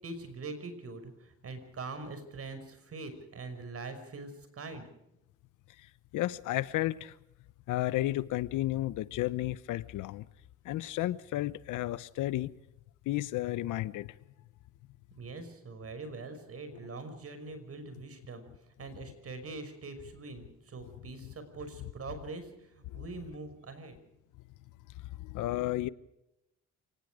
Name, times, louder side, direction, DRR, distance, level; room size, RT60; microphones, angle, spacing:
voice 1, 0.0-4.9 15.2-18.4 18.8-24.0, right 3 dB, 50° right, 5.8 m, -43 dB
voice 2, 6.1-7.1 7.7-10.2 10.6-12.5 13.1-14.1 22.9-23.0 25.2-25.9, left 16 dB, 90° left, 0.9 m, -32 dB
28.5 x 19.0 x 5.0 m
cardioid pair, 90°, 30 cm